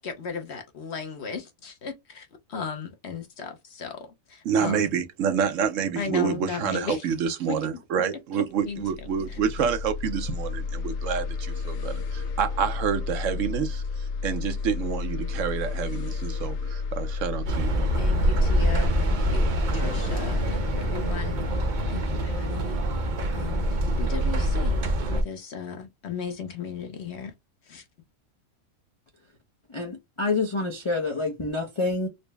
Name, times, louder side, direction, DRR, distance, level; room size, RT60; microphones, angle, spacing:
voice 1, 0.0-4.9 6.0-7.1 7.5-7.6 8.4-9.4 17.9-24.8 25.1-27.3 27.7-27.8, left 6 dB, 55° left, 0.9 m, -36 dB
voice 2, 4.4-17.7, right 7 dB, 65° right, 0.9 m, -28 dB
sound 1, 8.7-24.1, left 5 dB, 75° left, 1.3 m, -32 dB
sound 2, 17.5-25.2, right 1 dB, 50° right, 0.6 m, -25 dB
voice 3, 29.7-32.1, left 3 dB, 40° left, 0.4 m, -27 dB
4.0 x 2.1 x 3.3 m
omnidirectional pair, 1.5 m